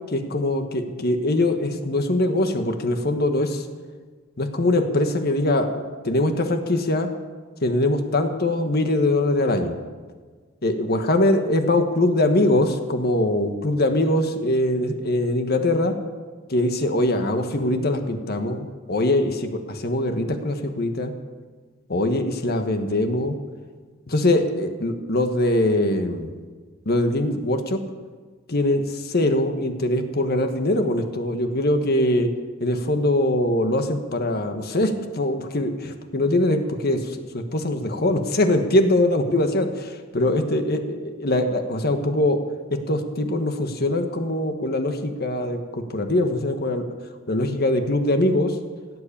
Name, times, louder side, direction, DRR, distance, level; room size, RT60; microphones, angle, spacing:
voice 1, 0.1-3.6 4.4-7.1 7.6-9.7 10.6-15.9 16.5-21.1 21.9-23.4 24.1-26.3 26.8-27.8 28.5-32.3 32.6-37.0 37.3-42.4 42.9-45.6 45.9-46.8 47.3-48.5, left 1 dB, 50° left, 6 dB, 1.4 m, -22 dB
17.5 x 7.8 x 8.6 m, 1.5 s
head